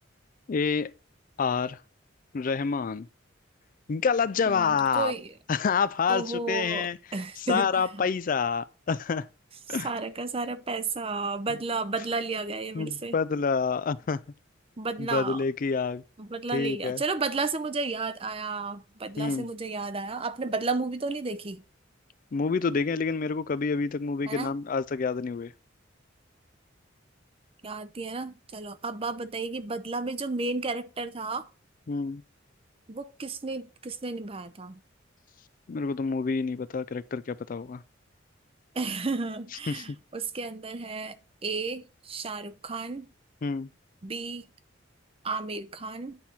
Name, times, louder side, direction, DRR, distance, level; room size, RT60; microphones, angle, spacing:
voice 1, 0.5-0.9 1.4-1.8 2.3-3.1 3.9-5.1 5.5-7.0 7.4-9.3 9.7-9.9 12.7-14.2 15.0-16.0 16.5-17.0 19.2-19.5 22.3-25.5 31.9-32.2 35.7-37.8 39.7-39.8 43.4-43.7, left 5 dB, 45° left, 0.4 m, -28 dB
voice 2, 4.5-5.3 6.1-8.0 9.8-13.1 14.8-15.4 16.2-21.6 24.3-24.6 27.6-31.5 32.9-34.8 38.7-43.1 44.0-44.5 45.2-46.2, right 3 dB, 30° right, 0.6 m, -33 dB
9.4 x 4.4 x 5.5 m
head